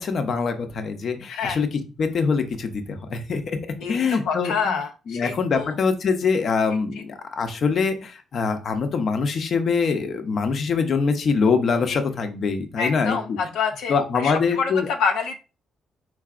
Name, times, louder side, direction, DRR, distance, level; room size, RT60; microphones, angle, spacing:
voice 1, 0.0-1.7 2.0-3.6 3.9-4.8 5.1-13.4 13.9-14.9, left 5 dB, 55° left, 7 dB, 0.8 m, -24 dB
voice 2, 4.2-5.7 11.9-12.0 12.8-15.4, left 5 dB, 90° left, 3 dB, 0.6 m, -27 dB
4.7 x 3.9 x 2.5 m, 0.32 s
cardioid pair, 90°, 0 cm